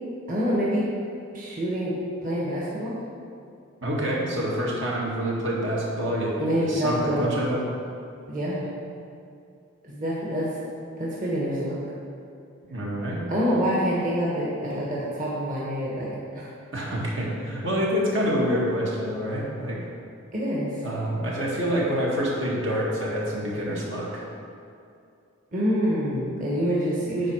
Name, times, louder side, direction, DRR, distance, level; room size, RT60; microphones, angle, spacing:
voice 1, 0.3-0.9 1.3-1.9 2.2-2.9 6.4-7.4 8.3-8.6 9.8-10.5 11.0-11.8 13.3-16.5 20.3-20.8 25.5-27.3, equal, 40° right, -6 dB, 1.5 m, -26 dB
voice 2, 3.8-7.6 12.7-13.2 16.7-19.8 20.8-24.2, equal, 65° right, -4 dB, 1.9 m, -27 dB
9.6 x 4.7 x 6.3 m, 2.5 s
head